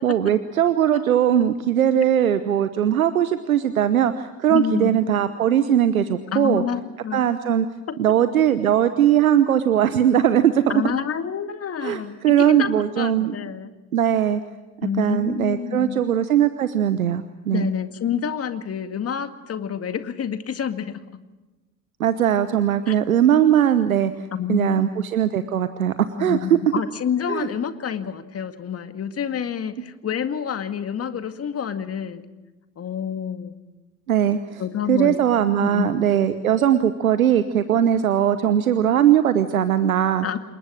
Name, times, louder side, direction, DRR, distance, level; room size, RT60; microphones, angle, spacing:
voice 1, 0.0-6.6 7.1-7.7 8.0-10.6 11.8-13.4 13.9-14.4 15.0-17.7 22.0-24.1 24.5-26.6 27.3-27.5 34.1-34.6 34.9-40.2, right 10 dB, 80° right, 12 dB, 1.0 m, -20 dB
voice 2, 4.5-5.1 6.3-7.2 7.9-8.0 10.7-13.7 14.8-16.0 17.5-21.0 22.9-23.0 24.3-25.1 26.2-32.3 32.8-33.6 34.6-35.2 35.6-36.0 40.2-40.4, left 8 dB, 35° left, 9 dB, 2.0 m, -28 dB
28.0 x 22.0 x 6.4 m, 1.1 s
figure-of-eight pair, 60°, 41 cm